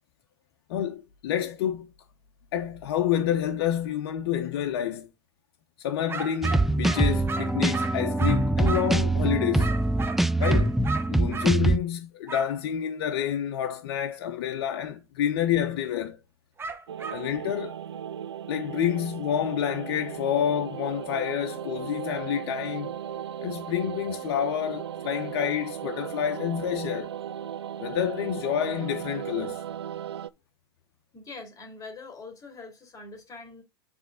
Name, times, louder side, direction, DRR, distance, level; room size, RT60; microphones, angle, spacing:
voice 1, 0.7-1.9 2.5-5.1 5.8-9.7 10.4-10.7 11.1-16.2 17.1-17.8 18.5-22.9 23.4-27.1 27.8-29.6, left 9 dB, 60° left, 0.9 m, -28 dB
sound 1, 6.1-9.0 9.6-11.6 12.3-12.5 16.6-17.2, right 4 dB, 15° right, 1.1 m, -35 dB
sound 2, 6.4-11.8, right 2 dB, ahead, 0.3 m, -24 dB
sound 3, 16.9-30.3, right 9 dB, 80° right, 0.5 m, -37 dB
voice 2, 31.1-33.6, left 3 dB, 25° left, 2.5 m, -43 dB
7.5 x 3.6 x 5.1 m
hypercardioid pair, 95°, 14 cm